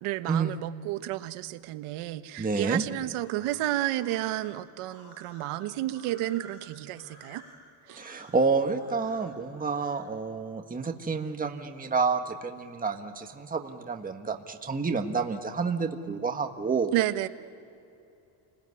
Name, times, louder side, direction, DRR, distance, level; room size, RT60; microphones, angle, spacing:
voice 1, 0.0-7.4 7.9-8.0 16.9-17.3, right 15 dB, 80° right, 11 dB, 1.2 m, -31 dB
voice 2, 2.4-2.8 8.0-16.9, right 4 dB, 15° right, 4 dB, 1.6 m, -29 dB
sound 1, 3.1-10.0, left 1 dB, 85° left, 7.2 m, -53 dB
29.5 x 20.5 x 9.7 m, 2.7 s
cardioid pair, 115°, 50 cm